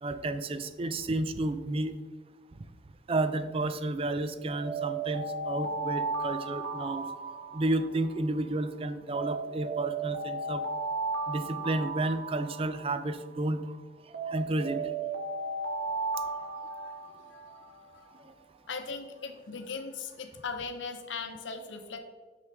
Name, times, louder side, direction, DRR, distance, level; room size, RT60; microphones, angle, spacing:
voice 1, 0.0-1.9 3.1-7.1 7.5-10.6 11.3-13.6 14.3-14.8 18.2-18.3, right 2 dB, 30° right, 11 dB, 0.4 m, -31 dB
Alarm, 4.5-8.6 9.1-13.6 14.1-17.9, right 3 dB, 65° right, 0.9 m, -35 dB
voice 2, 16.7-18.1 18.7-22.0, left 5 dB, 80° left, 7 dB, 0.8 m, -40 dB
6.0 x 5.8 x 3.5 m, 1.4 s
head